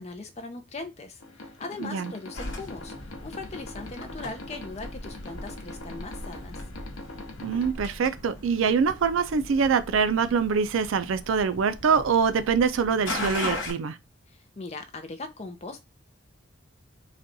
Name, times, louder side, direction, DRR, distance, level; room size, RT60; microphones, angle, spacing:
voice 1, 0.0-6.6 14.3-15.8, left 3 dB, 30° left, 0.5 m, -40 dB
sound 1, 1.2-7.7, left 2 dB, 90° left, 0.7 m, -43 dB
voice 2, 1.8-2.1 7.4-14.0, right 6 dB, 75° right, 0.4 m, -24 dB
sound 2, 2.3-13.7, left 2 dB, 65° left, 1.0 m, -38 dB
4.1 x 2.3 x 2.6 m
head